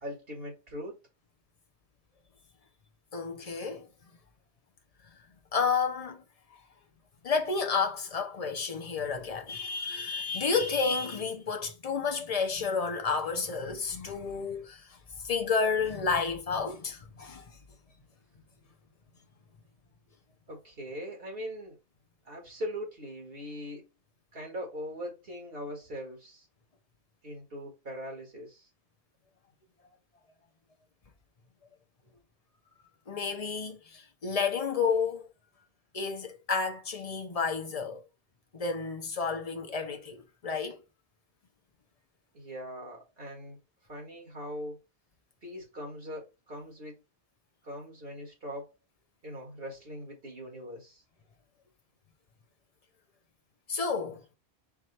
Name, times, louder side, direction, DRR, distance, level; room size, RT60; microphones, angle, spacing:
voice 1, 0.0-1.0 20.5-21.8 22.2-23.9 24.3-26.5 27.2-28.7 42.3-43.6 43.9-44.8 45.4-46.9 47.6-48.7 49.2-51.0, equal, 55° right, 2.1 m, -41 dB
voice 2, 3.1-3.9 5.5-6.2 7.2-17.5 33.1-35.3 35.9-38.0 38.5-40.8 53.7-54.2, left 5 dB, 35° left, 0.9 m, -31 dB
4.7 x 2.5 x 4.3 m
omnidirectional pair, 1.1 m